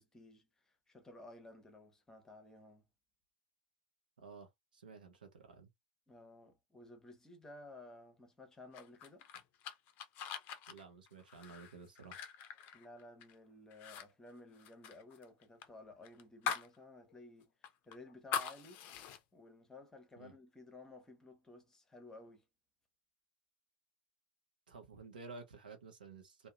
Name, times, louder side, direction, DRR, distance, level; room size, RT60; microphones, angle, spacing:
voice 1, 0.0-2.9 6.1-9.3 12.7-18.8 19.3-22.5, left 2 dB, 10° left, 0.8 m, -55 dB
voice 2, 4.2-5.7 10.7-12.2 20.2-20.3 24.7-26.5, right 4 dB, 70° right, 0.7 m, -53 dB
sound 1, 8.7-13.4 13.7-14.1 14.3-16.8 17.1-17.2 17.6-19.2, left 7 dB, 40° left, 0.4 m, -43 dB
2.7 x 2.1 x 2.4 m
figure-of-eight pair, 85°, 5 cm